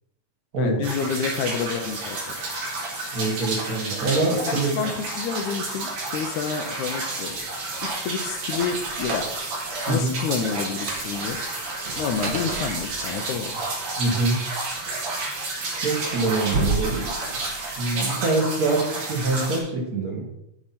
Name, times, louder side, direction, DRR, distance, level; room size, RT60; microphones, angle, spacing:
voice 1, 0.6-2.2 4.5-7.4 8.0-9.3 9.9-11.4 12.0-13.5, left 6 dB, 75° left, 5 dB, 2.0 m, -29 dB
sound 1, 0.8-19.6, right 2 dB, 75° right, 4.0 m, -31 dB
voice 2, 3.1-4.7 9.9-10.1 14.0-14.4 15.8-17.1 17.8-20.3, right 2 dB, 35° right, -1 dB, 1.5 m, -24 dB
sound 2, 7.8-9.7 9.9-10.2 10.6-13.4 14.2-15.1 15.7-18.0, right 3 dB, 50° right, 2.2 m, -31 dB
13.5 x 5.0 x 4.2 m, 0.83 s
omnidirectional pair, 3.9 m